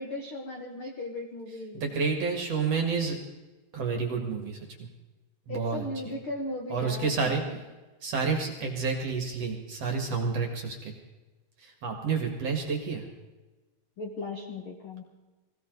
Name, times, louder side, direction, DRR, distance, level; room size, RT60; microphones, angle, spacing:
voice 1, 0.0-1.8 5.5-7.2 7.5-7.6 14.0-15.0, left 2 dB, 60° left, 1 dB, 1.4 m, -37 dB
voice 2, 1.7-3.2 3.7-4.9 5.5-6.2 6.7-7.4 8.0-10.9 11.6-13.1, right 5 dB, 50° right, 2 dB, 2.3 m, -30 dB
21.0 x 17.0 x 3.9 m, 1.2 s
omnidirectional pair, 4.8 m